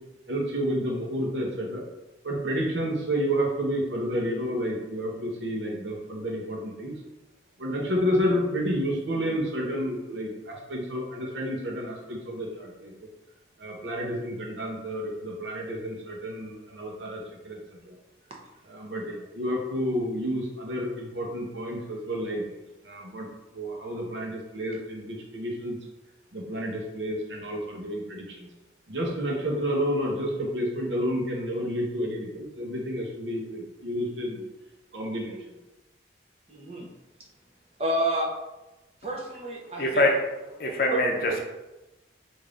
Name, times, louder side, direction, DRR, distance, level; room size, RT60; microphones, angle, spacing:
voice 1, 0.3-1.8 2.2-6.9 7.6-12.9 13.6-17.6 17.9-18.0 18.7-22.4 22.9-23.3 23.5-25.8 26.3-28.5 28.9-34.4 34.9-35.4, equal, 75° right, 0 dB, 0.8 m, -30 dB
voice 2, 36.5-36.9 37.8-38.3 39.0-40.0, right 1 dB, 35° right, -1 dB, 0.6 m, -29 dB
voice 3, 39.8-40.2 40.6-41.4, left 1 dB, 50° left, 1 dB, 0.6 m, -23 dB
3.3 x 2.6 x 3.7 m, 1.0 s
head